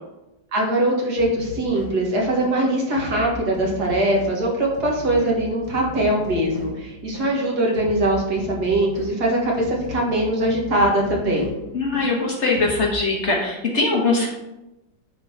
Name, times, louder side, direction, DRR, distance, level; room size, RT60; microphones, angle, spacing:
voice 1, 0.5-11.5, right 1 dB, 70° right, -2 dB, 2.3 m, -22 dB
sound 1, 1.2-13.0, left 2 dB, 25° right, 2.0 m, -37 dB
voice 2, 11.7-14.3, left 3 dB, 45° left, -1 dB, 1.7 m, -21 dB
9.7 x 4.0 x 4.7 m, 0.95 s
omnidirectional pair, 1.8 m